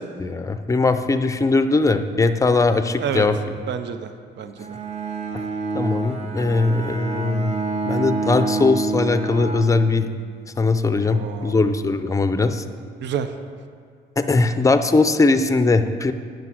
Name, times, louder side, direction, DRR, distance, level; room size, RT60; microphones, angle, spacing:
voice 1, 0.2-3.4 5.7-7.5 7.9-10.1 10.6-12.6 14.2-16.1, left 3 dB, 15° left, 10 dB, 0.5 m, -20 dB
voice 2, 3.7-4.8 11.0-11.6 13.0-13.3, right 8 dB, 65° right, 9 dB, 0.6 m, -29 dB
Bowed string instrument, 4.6-10.4, right 3 dB, 30° right, 0.8 m, -27 dB
9.3 x 5.2 x 6.2 m, 2.1 s
cardioid pair, 90°, 20 cm